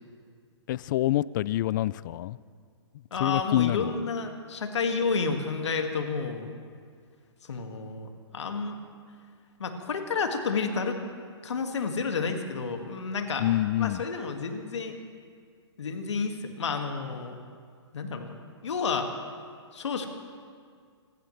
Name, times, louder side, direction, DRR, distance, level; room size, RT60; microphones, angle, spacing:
voice 1, 0.7-2.4 3.2-3.9 13.4-14.0, left 14 dB, 45° left, 21 dB, 0.4 m, -26 dB
voice 2, 3.1-6.5 7.4-8.8 9.6-11.0 11.4-13.5 13.8-15.0 15.8-17.4 17.9-18.3 18.6-19.1 19.7-20.1, left 5 dB, 75° left, 5 dB, 2.0 m, -30 dB
27.5 x 15.5 x 3.3 m, 2.1 s
hypercardioid pair, 135°, 15 cm